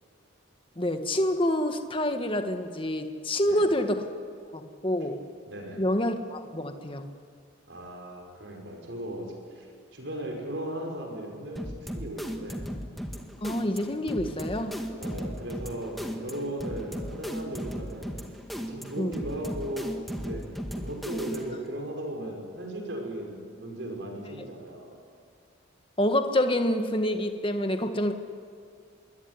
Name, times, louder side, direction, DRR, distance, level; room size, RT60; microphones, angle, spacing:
voice 1, 0.8-4.1 4.5-5.2 5.8-7.1 13.4-14.8 19.0-19.1 26.0-28.1, left 1 dB, 25° left, 6 dB, 1.7 m, -27 dB
voice 2, 5.5-5.8 7.7-12.6 15.0-18.1 18.5-20.5 20.7-25.0, right 1 dB, 60° right, 2 dB, 5.9 m, -37 dB
sound 1, 11.6-21.7, equal, ahead, 1.8 m, -36 dB
26.0 x 22.5 x 9.9 m, 2.2 s
head